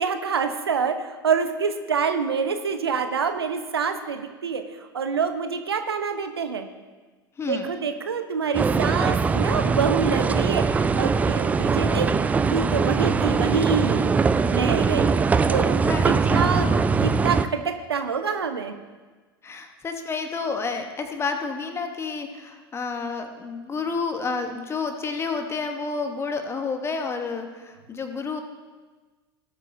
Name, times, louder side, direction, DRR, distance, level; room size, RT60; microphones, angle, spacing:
voice 1, 0.0-6.7 7.5-10.6 11.0-12.1 12.5-14.2 14.5-15.8 16.1-16.7 17.0-18.7, right 6 dB, 75° right, 7 dB, 0.8 m, -26 dB
voice 2, 7.4-7.7 15.8-16.0 16.3-16.6 19.4-28.4, left 4 dB, 20° left, 6 dB, 1.2 m, -30 dB
sound 1, 8.5-17.5, right 5 dB, 10° right, 0.3 m, -22 dB
18.5 x 8.2 x 2.7 m, 1.3 s
figure-of-eight pair, 85°, 13 cm